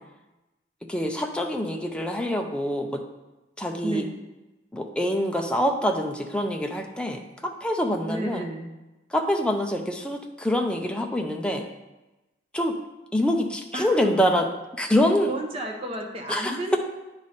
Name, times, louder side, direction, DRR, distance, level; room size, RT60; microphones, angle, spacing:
voice 1, 0.9-3.0 3.6-4.0 4.7-8.4 9.1-11.6 12.5-12.8 13.1-14.5 14.8-15.3 16.3-16.8, equal, 5° left, 3 dB, 0.5 m, -25 dB
voice 2, 8.1-8.7 13.7-13.9 15.3-16.8, right 1 dB, 30° right, 1 dB, 0.9 m, -31 dB
9.4 x 3.2 x 4.2 m, 1.0 s
head